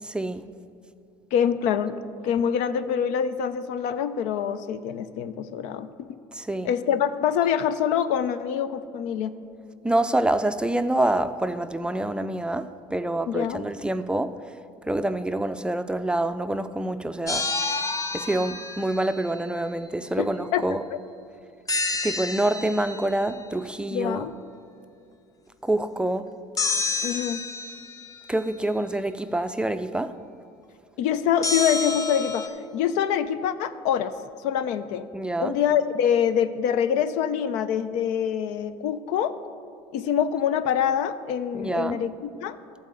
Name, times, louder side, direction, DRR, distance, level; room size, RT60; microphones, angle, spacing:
voice 1, 0.0-0.4 6.3-6.7 9.8-14.4 14.9-17.5 18.1-20.8 22.0-24.3 25.6-26.3 28.3-30.2 35.1-35.5 41.5-42.0, right 1 dB, 10° right, 10 dB, 0.4 m, -26 dB
voice 2, 1.3-6.1 6.6-9.3 13.3-13.6 20.2-20.7 20.9-21.0 23.9-24.3 27.0-27.4 31.0-34.1 34.4-35.1 35.4-39.4 39.9-42.6, left 8 dB, 75° left, 13 dB, 0.5 m, -25 dB
sound 1, 17.3-19.4 21.7-23.2 26.6-28.3 31.4-32.5, left 3 dB, 30° left, 0.8 m, -29 dB
12.5 x 4.2 x 7.6 m, 2.6 s
supercardioid pair, 85°, 12 cm